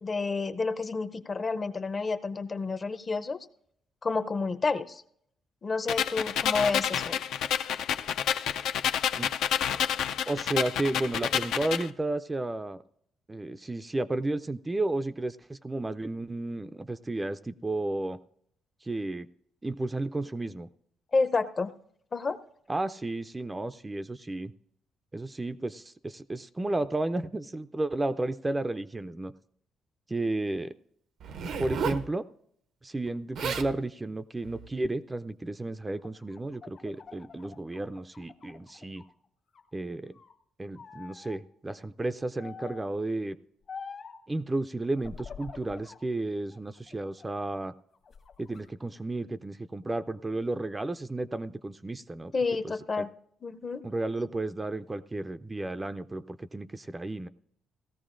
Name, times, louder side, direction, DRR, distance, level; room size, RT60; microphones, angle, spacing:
voice 1, 0.0-3.4 4.0-5.0 5.6-7.2 21.1-21.7 22.1-22.4 52.3-53.1 53.4-53.8, left 4 dB, 35° left, 10 dB, 0.6 m, -29 dB
sound 1, 5.9-11.9, left 9 dB, 80° left, 0.4 m, -29 dB
voice 2, 10.3-12.8 13.3-18.2 18.8-19.3 19.6-20.7 22.7-24.5 25.1-29.3 30.1-30.7 31.6-32.2 32.8-39.0 39.7-40.2 40.6-43.4 44.3-47.7 48.4-52.3 52.6-53.1 53.8-57.3, right 2 dB, 20° right, 11 dB, 0.4 m, -33 dB
Zipper (clothing), 31.2-32.1 33.1-33.2 33.3-33.7 34.4-34.7, right 6 dB, 75° right, 0.7 m, -33 dB
sound 2, 35.9-39.1 39.5-40.4 40.8-41.4 42.4-42.9 43.7-44.2 45.0-46.0 46.5-47.5 47.9-48.6, left 6 dB, 55° left, 1.1 m, -46 dB
17.0 x 14.0 x 2.5 m, 0.70 s
cardioid pair, 90°, 0 cm